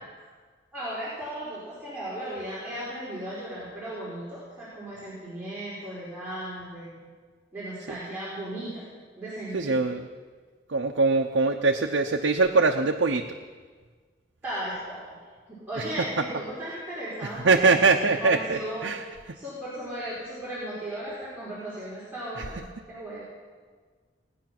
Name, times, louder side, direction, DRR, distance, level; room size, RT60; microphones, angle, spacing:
voice 1, 0.7-7.0 7.5-8.8 9.2-9.8 14.4-15.2 15.5-18.9 19.3-23.2, right 1 dB, 10° right, -10 dB, 4.6 m, -36 dB
voice 2, 9.5-10.1 10.7-13.2 17.4-19.0 22.4-22.5, right 3 dB, 80° right, 3 dB, 0.8 m, -22 dB
19.0 x 9.8 x 6.0 m, 1.5 s
head